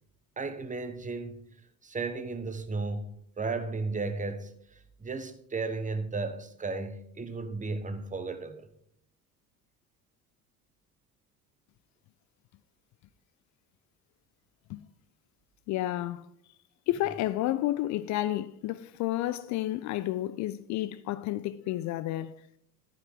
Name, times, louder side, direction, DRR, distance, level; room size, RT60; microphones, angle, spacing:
voice 1, 0.4-1.4 1.8-8.7, right 3 dB, 15° right, 1.3 m, -34 dB
voice 2, 15.7-16.2 16.9-22.4, left 14 dB, 40° left, 0.5 m, -31 dB
12.0 x 9.3 x 3.7 m
figure-of-eight pair, 60°, 46 cm